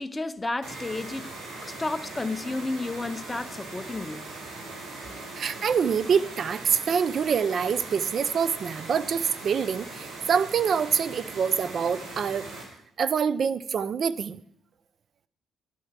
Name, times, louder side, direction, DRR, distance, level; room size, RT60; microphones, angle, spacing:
voice 1, 0.0-1.3 1.6-4.3, left 2 dB, 15° left, 0.7 m, -32 dB
sound 1, 0.6-12.6, right 3 dB, 85° right, 4.5 m, -40 dB
voice 2, 5.4-12.4 13.0-14.4, right 6 dB, 55° right, 0.6 m, -25 dB
11.0 x 11.0 x 7.4 m
cardioid pair, 90°, 0 cm